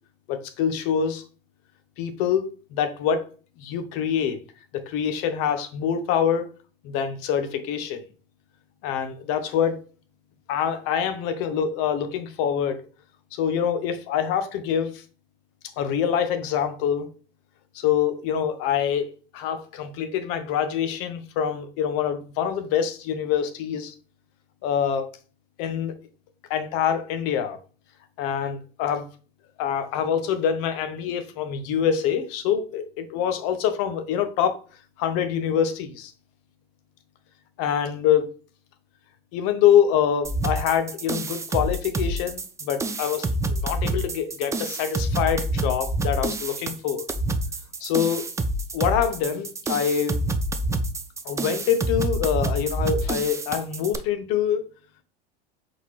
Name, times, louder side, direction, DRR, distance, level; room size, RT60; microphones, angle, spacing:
voice 1, 0.3-1.2 2.0-3.3 3.6-4.4 4.7-6.5 6.8-8.0 8.8-9.8 10.5-12.8 13.3-15.0 15.8-17.1 17.7-23.9 24.6-25.1 25.6-25.9 26.5-27.6 28.2-29.1 29.6-34.6 35.0-36.1 37.6-38.3 39.3-47.1 47.8-48.3 48.7-50.2 51.2-54.7, left 8 dB, 50° left, 0.9 m, -25 dB
sound 1, 40.2-54.0, right 2 dB, 10° right, 0.4 m, -27 dB
4.3 x 3.9 x 3.1 m
hypercardioid pair, 85°, 29 cm